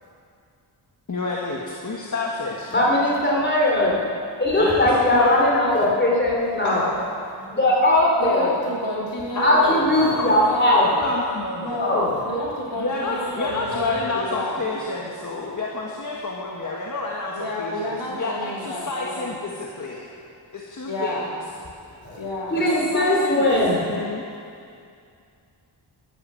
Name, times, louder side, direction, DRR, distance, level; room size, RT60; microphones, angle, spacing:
voice 1, 1.1-2.7 4.6-5.4 6.6-7.0 9.3-9.7 10.1-11.8 12.8-19.5 19.8-20.1 20.5-21.2 22.5-23.6 23.9-24.2, left 3 dB, 45° left, -3 dB, 1.5 m, -29 dB
voice 2, 2.7-4.0 4.4-6.8 7.5-8.5 9.4-10.9 11.8-12.1 22.0-22.2 22.5-23.8, left 1 dB, 25° left, -3 dB, 3.5 m, -19 dB
voice 3, 8.2-9.9 10.4-10.9 11.6-14.6 17.3-19.3 20.8-21.4 22.2-22.7, left 1 dB, 90° left, -4 dB, 3.7 m, -30 dB
13.5 x 12.5 x 7.6 m, 2.4 s
wide cardioid pair, 160°, 43 cm